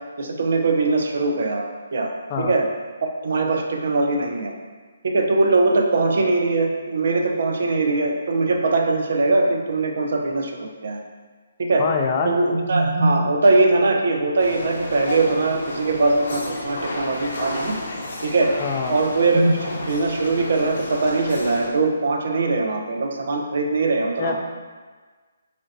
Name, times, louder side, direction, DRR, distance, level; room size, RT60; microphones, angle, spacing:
voice 1, 0.2-1.7 1.9-2.1 2.4-2.6 3.2-4.5 5.0-11.0 11.6-11.8 12.2-17.8 18.2-18.5 18.9-24.3, right 3 dB, 60° right, 2 dB, 0.5 m, -21 dB
voice 2, 11.8-12.3 18.6-18.9 24.2-24.5, left 5 dB, 30° left, 2 dB, 0.3 m, -24 dB
sound 1, 14.4-21.7, left 2 dB, 50° left, 0.7 m, -32 dB
4.2 x 2.8 x 2.7 m, 1.4 s
hypercardioid pair, 150°, 0 cm